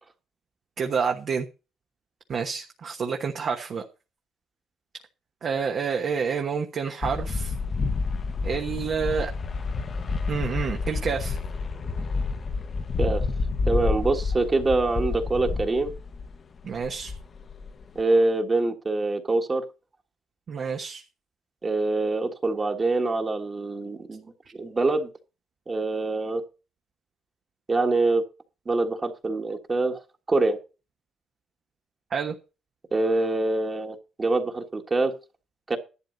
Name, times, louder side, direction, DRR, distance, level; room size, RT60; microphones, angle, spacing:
voice 1, 0.8-1.5 2.3-3.8 5.4-7.5 8.4-9.3 10.3-11.4 16.6-17.1 20.5-21.0 32.1-32.3, right 6 dB, 50° right, 4 dB, 1.2 m, -28 dB
sound 1, 7.0-16.4 16.7-18.0, left 4 dB, 35° left, 1.0 m, -29 dB
voice 2, 13.6-15.9 17.9-19.6 21.6-24.3 24.6-25.1 25.7-26.4 27.7-28.2 28.6-30.0 30.3-30.6 32.9-35.1 35.7-35.8, right 2 dB, 25° right, 3 dB, 1.6 m, -24 dB
11.5 x 8.9 x 4.0 m, 0.31 s
cardioid pair, 120°, 0 cm